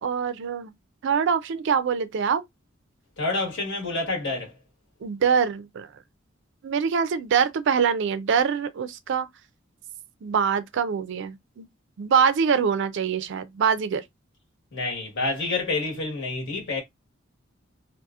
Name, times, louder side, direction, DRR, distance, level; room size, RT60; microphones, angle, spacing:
voice 1, 0.0-0.7 1.0-2.4 5.0-5.9 6.6-9.3 10.2-11.7 12.0-14.0, right 6 dB, 65° right, 0.4 m, -24 dB
voice 2, 3.2-4.5 14.7-16.8, left 3 dB, 65° left, 1.3 m, -28 dB
2.7 x 2.4 x 2.3 m
head